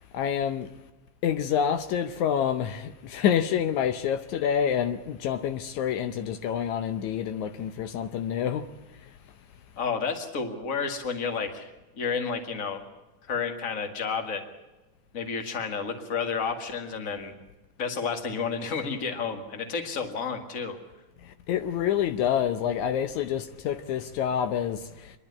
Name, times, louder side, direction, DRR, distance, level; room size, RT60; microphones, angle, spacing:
voice 1, 0.1-0.7 1.2-8.6 21.5-24.8, left 9 dB, 75° left, 2.1 m, -27 dB
voice 2, 9.8-11.7 12.0-12.8 13.3-14.4 15.1-17.3 17.8-20.8, left 5 dB, 30° left, 2.0 m, -31 dB
26.0 x 11.0 x 9.6 m
omnidirectional pair, 3.5 m